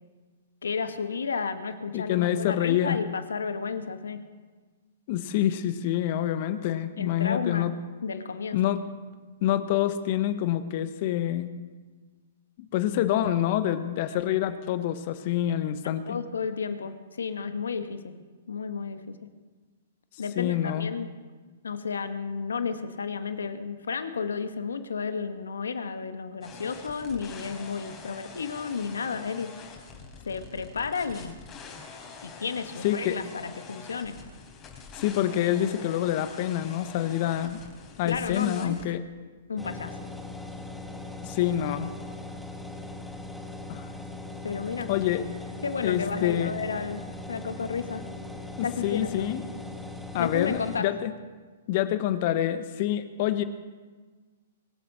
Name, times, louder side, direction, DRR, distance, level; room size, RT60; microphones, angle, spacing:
voice 1, 0.6-4.2 7.0-7.7 8.0-8.6 15.8-18.2 18.5-19.2 20.2-21.1 21.6-29.5 30.2-31.3 32.2-34.1 38.0-38.8 39.5-39.9 44.4-44.9 45.6-47.0 47.3-48.0 48.6-49.3 50.2-50.9, left 5 dB, 80° left, 9 dB, 1.4 m, -32 dB
voice 2, 1.9-3.0 5.1-7.7 8.5-8.8 9.4-11.5 12.7-16.2 20.3-20.9 32.8-33.2 35.0-37.6 38.0-39.0 41.2-41.9 43.7-43.9 44.9-45.2 45.8-46.5 48.6-49.4 50.1-51.1 51.7-53.4, left 12 dB, 50° left, 11 dB, 1.2 m, -26 dB
sound 1, 26.4-38.8, left 5 dB, 25° left, 4.0 m, -45 dB
sound 2, 39.6-50.8, left 2 dB, ahead, 1.5 m, -40 dB
23.5 x 7.9 x 6.5 m, 1.4 s
hypercardioid pair, 120°, 0 cm